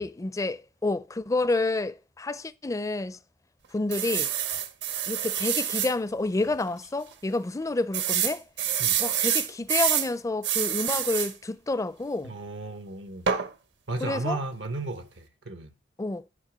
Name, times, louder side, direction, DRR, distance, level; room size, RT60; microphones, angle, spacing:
voice 1, 0.0-3.2 3.7-4.3 5.1-8.5 9.0-12.3 14.0-14.4 16.0-16.2, left 2 dB, 20° left, 0.4 m, -29 dB
sound 1, 3.9-5.9 6.5-6.6 6.8-6.9 7.9-10.1 10.4-11.3 13.3-13.5, right 9 dB, 70° right, 0.9 m, -27 dB
voice 2, 12.2-13.3 13.9-15.7, right 2 dB, 90° right, 1.1 m, -34 dB
10.0 x 5.1 x 5.0 m
head